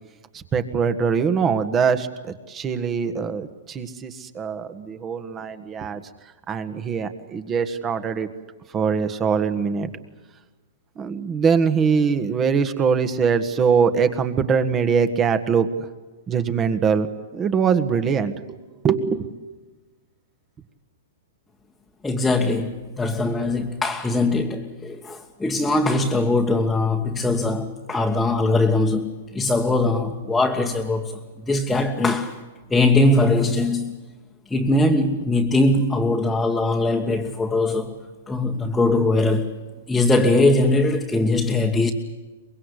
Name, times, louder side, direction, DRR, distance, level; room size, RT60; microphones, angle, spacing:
voice 1, 0.3-6.0 6.5-8.3 8.7-9.9 10.9-15.7 16.3-17.1 17.3-18.6 18.8-19.3, right 6 dB, 25° right, 1.6 m, -22 dB
voice 2, 22.0-31.2 31.5-32.4 32.7-34.0 34.5-38.0 38.3-39.5 39.9-41.9, left 2 dB, 5° left, 1.5 m, -21 dB
24.0 x 21.5 x 8.3 m
hypercardioid pair, 135°, 0 cm